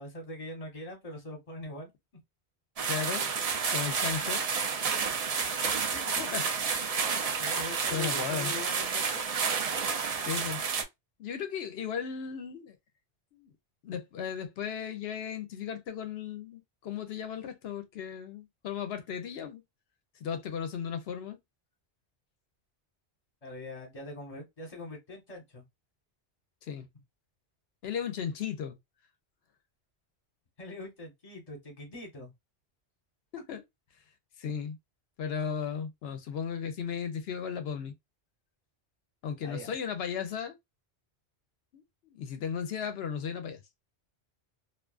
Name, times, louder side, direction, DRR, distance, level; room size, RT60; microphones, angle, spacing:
voice 1, 0.0-1.9 5.8-5.9 7.4-9.2 23.4-25.6 30.6-32.3 39.4-39.7, left 1 dB, 35° left, 1.1 m, -42 dB
sound 1, 2.8-10.8, right 5 dB, 55° right, 0.4 m, -30 dB
voice 2, 2.9-3.3 3.7-4.4 6.2-6.9 7.9-8.5 10.2-10.6 11.2-12.7 13.3-13.5 13.8-19.6 20.2-21.4 26.7-26.9 27.8-28.8 33.3-33.6 34.4-34.8 35.2-37.9 39.2-40.6 41.7-41.8 42.1-43.6, left 7 dB, 70° left, 0.8 m, -35 dB
2.4 x 2.3 x 2.2 m
omnidirectional pair, 1.2 m